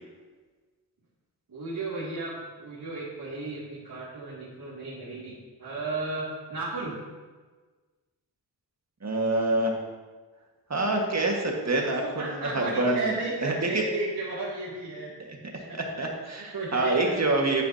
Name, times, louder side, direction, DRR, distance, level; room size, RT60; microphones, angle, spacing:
voice 1, 1.5-6.9 12.0-15.1 15.4-15.8 16.5-17.2, right 2 dB, 60° right, -9 dB, 2.6 m, -34 dB
voice 2, 9.0-9.7 10.7-13.1 13.4-13.8 16.0-17.6, right 2 dB, 40° right, 0 dB, 1.8 m, -26 dB
9.5 x 9.5 x 2.8 m, 1.3 s
cardioid pair, 65°, 40 cm